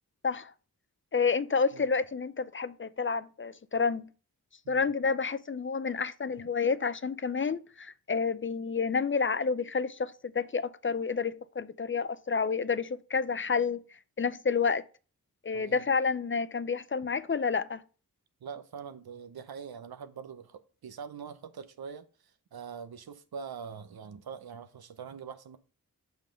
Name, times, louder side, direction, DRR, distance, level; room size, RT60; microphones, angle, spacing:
voice 1, 1.1-4.0 4.7-13.8 14.2-14.8 15.4-17.8, left 5 dB, 35° left, 0.5 m, -29 dB
voice 2, 15.5-15.8 18.4-22.1 22.5-25.6, right 6 dB, 90° right, 0.7 m, -43 dB
5.8 x 5.4 x 5.1 m
cardioid pair, 50°, 36 cm